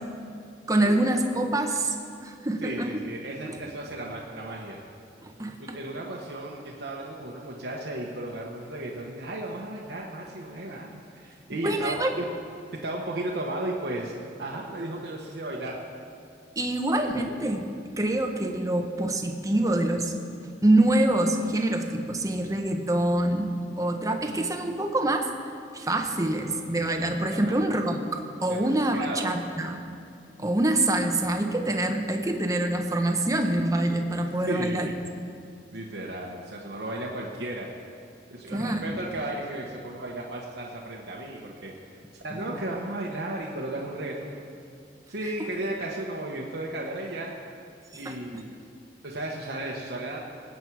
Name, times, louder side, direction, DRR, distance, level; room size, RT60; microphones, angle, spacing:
voice 1, 0.7-2.0 2.2-3.0 3.5-3.6 5.2-5.8 11.6-12.1 16.6-17.7 18.0-20.1 20.6-25.3 25.7-29.9 30.4-34.9 38.5-39.0 42.3-42.4 47.9-48.2, right 1 dB, 20° right, 4 dB, 0.9 m, -25 dB
voice 2, 2.6-4.8 5.6-12.2 12.8-15.8 27.3-27.5 28.5-29.3 34.5-34.9 35.7-37.7 38.3-44.4 45.1-47.3 48.0-48.5 49.0-50.2, right 1 dB, 70° right, -3 dB, 1.2 m, -34 dB
19.5 x 8.5 x 4.7 m, 2.4 s
head